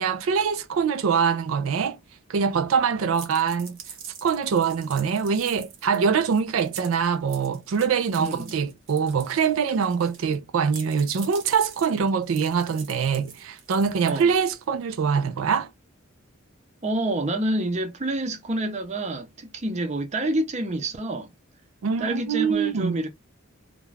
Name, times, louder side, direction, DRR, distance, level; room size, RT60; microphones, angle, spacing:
voice 1, 0.0-2.0 2.3-3.8 4.2-15.7 21.8-23.0, right 6 dB, 85° right, 0.4 m, -24 dB
sound 1, 3.1-10.4 10.7-14.6, right 7 dB, 65° right, 0.8 m, -45 dB
voice 2, 8.2-8.5 14.0-14.3 16.8-21.3 22.0-23.1, right 1 dB, 35° right, 0.5 m, -28 dB
2.4 x 2.2 x 3.1 m
head